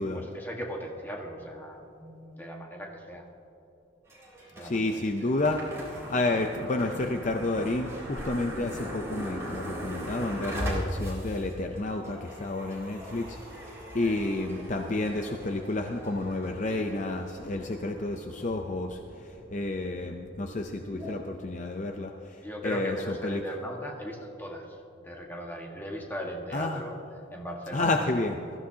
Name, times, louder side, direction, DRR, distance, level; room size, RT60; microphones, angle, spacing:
voice 1, 0.1-3.2 4.5-5.4 14.0-14.2 22.4-27.0 27.3-28.2, equal, 10° left, 0 dB, 1.5 m, -38 dB
sound 1, 4.1-21.1, equal, 15° right, 3.6 m, -40 dB
voice 2, 4.6-23.0 23.2-23.4 26.5-26.8 27.7-28.3, left 2 dB, 40° left, 4 dB, 0.6 m, -30 dB
21.0 x 14.0 x 2.8 m, 2.9 s
head